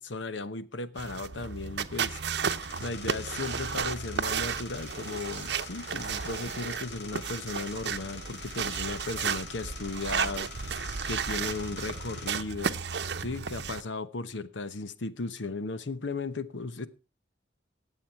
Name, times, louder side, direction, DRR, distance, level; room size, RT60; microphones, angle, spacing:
voice 1, 0.0-2.2 2.8-10.8 11.1-12.8 13.2-16.9, left 3 dB, 85° left, 1.0 m, -36 dB
sound 1, 1.0-13.8, right 6 dB, 65° right, 0.7 m, -33 dB
sound 2, 2.1-12.3, left 3 dB, 65° left, 2.3 m, -45 dB
18.5 x 7.7 x 4.5 m
head